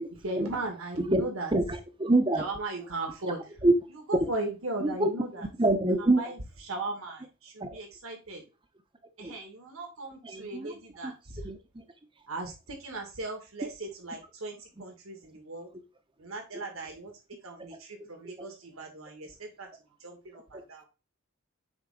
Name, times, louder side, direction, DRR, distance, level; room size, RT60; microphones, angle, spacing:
voice 1, 0.2-1.5 2.4-3.4 4.1-5.5 6.2-6.4 6.7-8.4 9.2-11.5 12.3-15.7 16.2-19.7 20.0-20.9, right 2 dB, 85° right, 2.1 m, -37 dB
voice 2, 2.0-2.4 3.6-3.7 4.8-5.1 5.4-6.2 7.6-7.8 9.2-9.3 10.2-10.7 11.0-11.1 11.4-11.8 17.7-17.8 18.4-18.5 20.5-20.6, right 2 dB, 25° right, 0.7 m, -26 dB
8.8 x 3.8 x 3.8 m
head